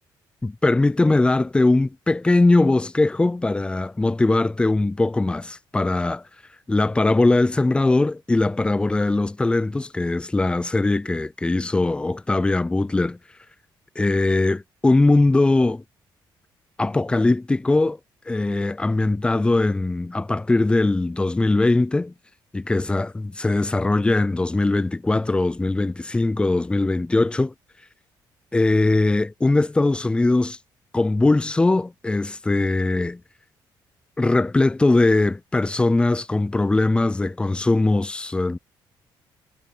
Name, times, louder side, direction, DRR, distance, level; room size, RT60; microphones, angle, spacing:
voice 1, 0.4-6.2 6.7-13.2 14.0-15.8 16.8-18.0 18.3-22.1 22.5-27.5 28.5-30.6 30.9-33.2 34.2-38.6, left 2 dB, 10° left, 0.4 m, -20 dB
cardioid pair, 90°, 9 cm